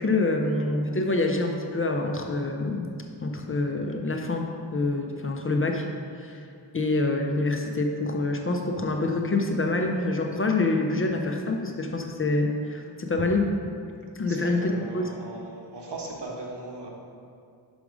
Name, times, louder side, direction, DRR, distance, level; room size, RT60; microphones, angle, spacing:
voice 1, 0.0-2.9 3.2-5.9 6.2-6.4 6.7-13.5 14.2-15.0, left 2 dB, 30° left, 3 dB, 0.6 m, -26 dB
voice 2, 14.3-16.9, right 2 dB, 70° right, -1 dB, 1.3 m, -38 dB
6.1 x 5.1 x 4.8 m, 2.4 s
wide cardioid pair, 95°, 43 cm